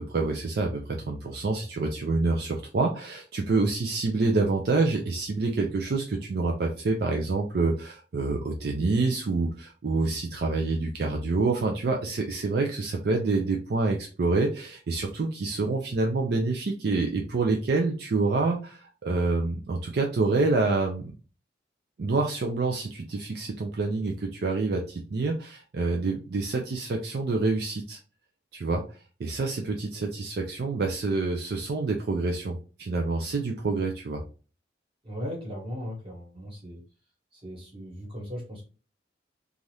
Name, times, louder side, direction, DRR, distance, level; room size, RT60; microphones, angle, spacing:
voice 1, 0.0-21.1 22.0-28.0 28.5-34.2, right 3 dB, 55° right, 1 dB, 0.4 m, -27 dB
voice 2, 35.0-36.8 37.3-38.7, equal, 30° right, -2 dB, 1.3 m, -37 dB
2.7 x 2.4 x 3.2 m, 0.36 s
head